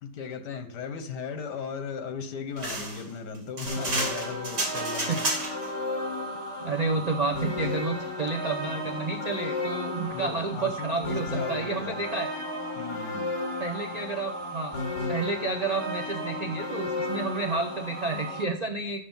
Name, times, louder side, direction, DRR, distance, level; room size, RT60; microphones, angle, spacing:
voice 1, 0.0-5.3 10.1-12.0 12.8-13.3, left 5 dB, 75° left, 9 dB, 1.6 m, -37 dB
sound 1, 2.6-5.7, right 2 dB, 60° right, 3.1 m, -31 dB
sound 2, 3.7-18.4, left 2 dB, 45° left, 2.1 m, -33 dB
voice 2, 6.6-12.3 13.6-14.8 15.1-19.0, right 3 dB, 85° right, 3 dB, 0.3 m, -30 dB
6.7 x 6.4 x 5.5 m, 0.70 s
omnidirectional pair, 1.8 m